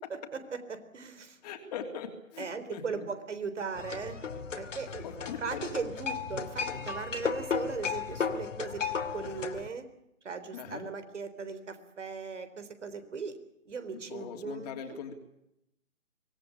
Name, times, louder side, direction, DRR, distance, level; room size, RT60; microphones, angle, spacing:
voice 1, 0.1-1.4 2.4-4.2 4.6-5.0 5.4-8.8 9.1-9.9 10.2-13.4 13.6-14.7, right 5 dB, 55° right, 11 dB, 3.8 m, -38 dB
voice 2, 1.4-3.0 4.9-5.7 10.5-10.9 14.1-15.1, left 7 dB, 30° left, 5 dB, 3.2 m, -41 dB
sound 1, 3.7-9.7, left 6 dB, 60° left, 2.7 m, -35 dB
25.0 x 19.5 x 8.6 m, 0.82 s
figure-of-eight pair, 145°, 42 cm